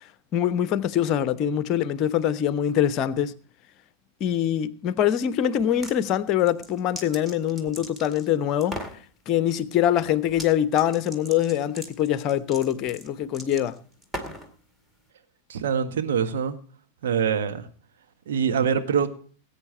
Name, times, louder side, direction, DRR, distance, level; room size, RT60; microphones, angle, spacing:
voice 1, 0.3-3.3 4.2-8.8 9.3-13.7, left 10 dB, 35° left, 0.9 m, -24 dB
sound 1, 5.6-6.0 6.4-8.3 8.6-9.0 10.3-10.5 10.8-14.5, equal, 10° right, 2.1 m, -38 dB
voice 2, 15.5-16.6 17.0-17.7 18.3-19.1, right 7 dB, 60° right, 1.5 m, -24 dB
19.5 x 8.8 x 4.3 m
figure-of-eight pair, 90°, 0 cm